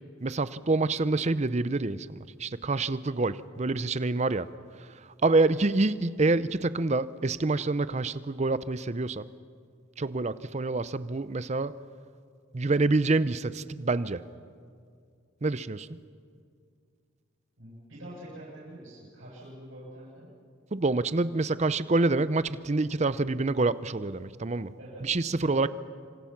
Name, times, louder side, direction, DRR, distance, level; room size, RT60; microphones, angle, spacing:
voice 1, 0.2-4.5 5.2-9.2 10.0-11.7 12.5-14.2 15.4-16.0 20.7-24.7 25.0-25.7, right 3 dB, 35° right, 15 dB, 0.6 m, -27 dB
voice 2, 17.6-20.3 24.8-25.7, right 1 dB, 75° right, -6 dB, 8.0 m, -46 dB
27.0 x 26.0 x 5.9 m, 2.2 s
head